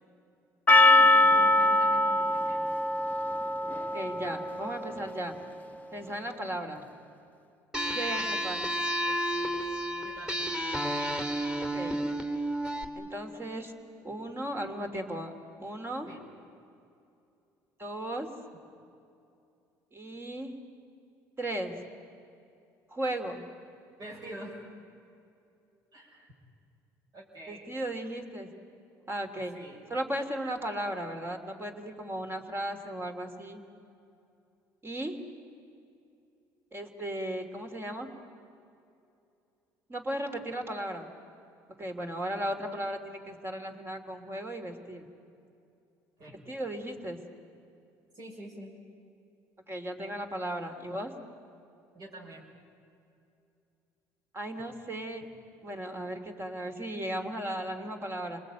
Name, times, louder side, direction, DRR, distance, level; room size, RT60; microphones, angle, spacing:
Percussion, 0.7-5.2, left 2 dB, 20° left, 1.0 m, -23 dB
voice 1, 0.8-2.8 8.3-8.4 10.0-10.5 16.1-16.2 24.0-24.6 25.9-26.3 27.1-27.7 29.5-29.8 46.2-46.3 48.1-48.7 51.9-52.5, right 1 dB, 55° right, -3 dB, 6.1 m, -46 dB
voice 2, 3.9-5.3 5.9-6.8 7.9-8.7 11.7-12.0 13.0-13.7 14.0-15.3 15.6-16.1 17.8-18.3 19.9-20.5 21.4-21.8 22.9-23.4 27.5-28.5 29.1-29.5 29.9-33.6 34.8-35.2 36.7-38.1 39.9-41.1 41.8-45.1 46.5-47.2 49.7-51.1 54.3-55.3 55.6-58.4, right 1 dB, 30° right, 5 dB, 3.3 m, -36 dB
sound 1, 7.7-12.8, equal, 10° right, 2.8 m, -31 dB
28.0 x 20.0 x 9.2 m, 2.6 s
supercardioid pair, 80°, 8 cm